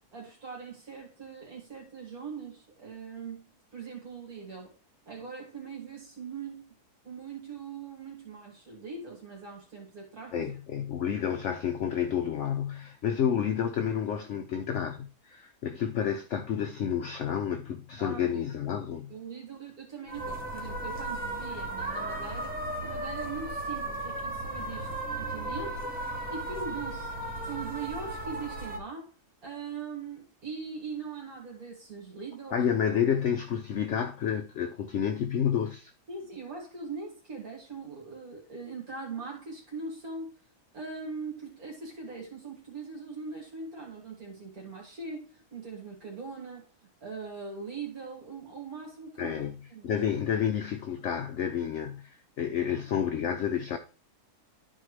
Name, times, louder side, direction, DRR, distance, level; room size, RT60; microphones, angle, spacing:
voice 1, 0.1-4.7 5.1-6.7 7.0-10.5 18.0-18.4 19.1-22.5 22.8-25.8 26.3-27.1 27.4-29.1 29.4-32.7 36.1-40.3 40.7-46.7 47.0-49.9, right 4 dB, 65° right, 2.4 m, -41 dB
voice 2, 10.3-19.2 32.5-35.9 49.2-53.8, left 8 dB, 60° left, 0.8 m, -30 dB
sound 1, 20.1-28.8, right 2 dB, 5° right, 1.7 m, -35 dB
12.0 x 4.5 x 3.2 m
omnidirectional pair, 1.7 m